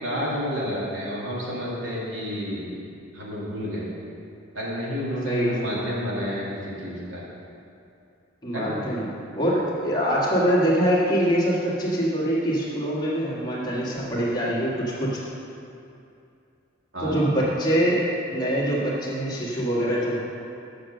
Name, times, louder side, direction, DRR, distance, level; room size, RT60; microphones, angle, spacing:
voice 1, 0.0-2.7 3.1-3.9 4.5-7.2 8.5-8.7 16.9-17.2, equal, 70° right, -6 dB, 2.2 m, -30 dB
voice 2, 5.2-5.8 8.4-9.1 9.3-15.2 17.0-18.0 18.3-20.2, equal, 20° left, -6 dB, 1.5 m, -24 dB
7.3 x 6.5 x 6.4 m, 2.6 s
head